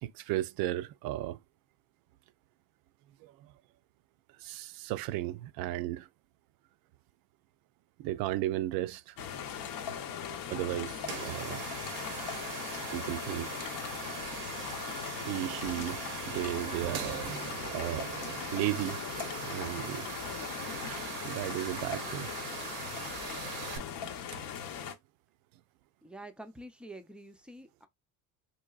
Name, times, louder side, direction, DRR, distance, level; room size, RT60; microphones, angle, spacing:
voice 1, 0.0-1.4 3.2-3.5 4.4-6.1 8.0-9.1 10.3-11.6 12.9-13.5 15.3-17.1 17.7-18.1 18.5-19.0 19.4-20.1 20.9-22.3 24.3-24.4, right 15 dB, 60° right, 0.5 m, -35 dB
sound 1, 9.2-25.0, left 8 dB, 55° left, 0.7 m, -39 dB
sound 2, 11.0-23.8, right 9 dB, 90° right, 0.8 m, -41 dB
voice 2, 26.0-27.9, right 1 dB, 5° right, 0.5 m, -47 dB
4.0 x 2.7 x 2.3 m
supercardioid pair, 85°, 40 cm